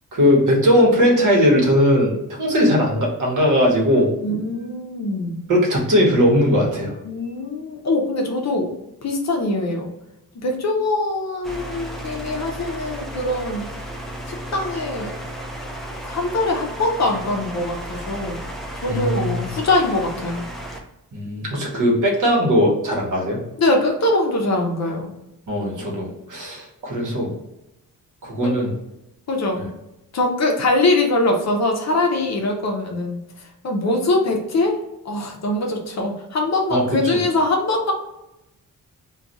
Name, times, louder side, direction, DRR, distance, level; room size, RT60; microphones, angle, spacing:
voice 1, 0.1-2.1 2.4-4.1 5.5-6.9 18.9-19.3 21.1-23.4 25.5-27.3 28.2-28.7 29.5-29.6 36.7-36.8, equal, 55° right, -2 dB, 1.1 m, -18 dB
voice 2, 4.2-5.4 7.0-8.7 9.0-9.9 10.4-13.7 14.3-15.1 16.0-18.4 18.7-20.4 23.6-25.1 28.4-28.5 29.3-29.7 30.1-33.2 33.6-34.8 35.0-37.9, left 2 dB, 50° left, 1 dB, 0.6 m, -22 dB
sound 1, 11.4-20.8, right 1 dB, ahead, 0.3 m, -33 dB
2.4 x 2.3 x 3.9 m, 0.90 s
wide cardioid pair, 155°, 36 cm